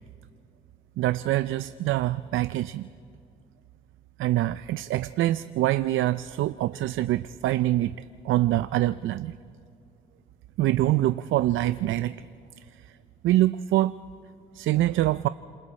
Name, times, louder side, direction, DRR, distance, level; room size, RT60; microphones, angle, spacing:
voice 1, 1.0-2.9 4.2-9.3 10.6-12.2 13.2-13.9 14.5-15.3, right 15 dB, 80° right, 14 dB, 0.5 m, -25 dB
29.5 x 27.5 x 4.3 m, 2.5 s
cardioid pair, 90°, 20 cm